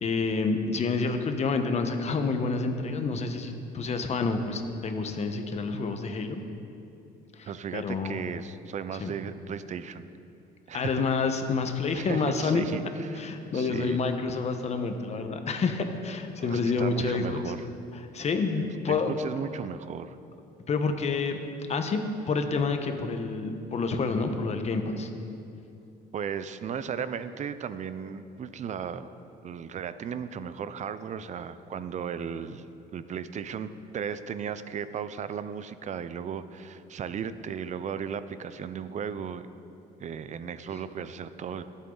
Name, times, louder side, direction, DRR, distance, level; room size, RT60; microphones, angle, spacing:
voice 1, 0.0-6.4 7.3-8.2 9.0-9.1 10.7-12.7 13.2-17.4 17.9-19.1 20.7-21.4 21.7-22.0 22.3-25.1, left 4 dB, 40° left, 6 dB, 1.2 m, -28 dB
voice 2, 7.5-10.1 10.7-11.0 11.9-13.3 13.5-14.0 16.4-17.7 18.6-20.2 26.1-29.1 29.4-32.7 32.9-39.5 40.0-41.6, right 7 dB, 45° right, 13 dB, 0.6 m, -36 dB
23.0 x 8.3 x 4.0 m, 2.7 s
cardioid pair, 110°, 17 cm